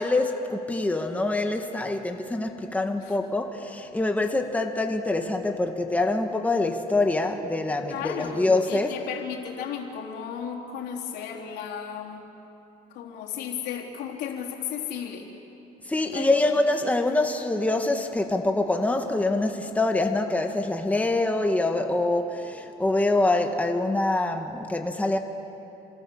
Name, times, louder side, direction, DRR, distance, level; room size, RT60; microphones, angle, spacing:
voice 1, 0.0-8.9 15.9-25.2, left 2 dB, 10° left, 4 dB, 1.8 m, -25 dB
voice 2, 7.9-12.2 12.9-15.3 16.0-16.4, left 8 dB, 85° left, -1 dB, 3.8 m, -34 dB
28.0 x 25.5 x 7.2 m, 3.0 s
cardioid pair, 110°, 17 cm